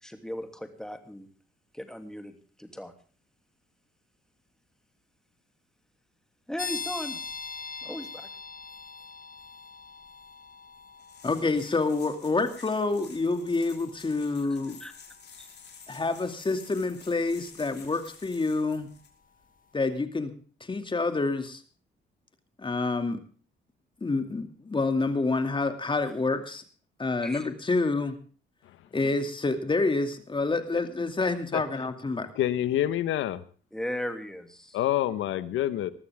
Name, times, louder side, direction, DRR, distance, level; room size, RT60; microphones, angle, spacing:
voice 1, 0.0-1.3 1.7-2.9 6.5-7.2 7.8-8.3 14.8-14.9 15.4-15.5 27.2-27.5 33.7-34.8, equal, 5° left, 7 dB, 2.8 m, -37 dB
sound 1, 6.6-19.1, left 5 dB, 45° left, 1.5 m, -44 dB
sound 2, 11.0-19.1, left 6 dB, 60° left, 5.4 m, -51 dB
voice 2, 11.2-14.8 15.9-18.9 19.7-20.3 20.6-21.6 22.6-23.2 24.0-26.6 27.0-28.2 28.9-32.3, left 3 dB, 25° left, 8 dB, 2.5 m, -28 dB
voice 3, 32.4-33.4 34.7-35.9, left 12 dB, 85° left, 14 dB, 1.2 m, -27 dB
20.5 x 13.5 x 3.6 m, 0.40 s
cardioid pair, 90°, 20 cm